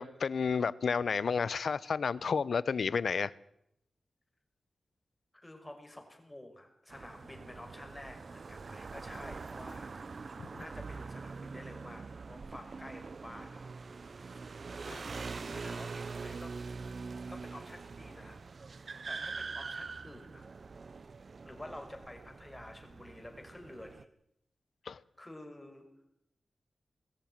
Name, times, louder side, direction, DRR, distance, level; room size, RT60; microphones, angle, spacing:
voice 1, 0.0-3.3 14.9-15.0 24.9-25.0, left 5 dB, 75° left, 0.8 m, -31 dB
voice 2, 5.3-9.9 10.5-14.4 14.8-16.6 17.3-18.4 19.1-20.4 21.4-24.1 24.9-25.9, left 1 dB, 15° left, 5.6 m, -50 dB
sound 1, 6.9-24.0, right 4 dB, 60° right, 0.7 m, -44 dB
21.5 x 14.0 x 9.5 m
cardioid pair, 70°, 0 cm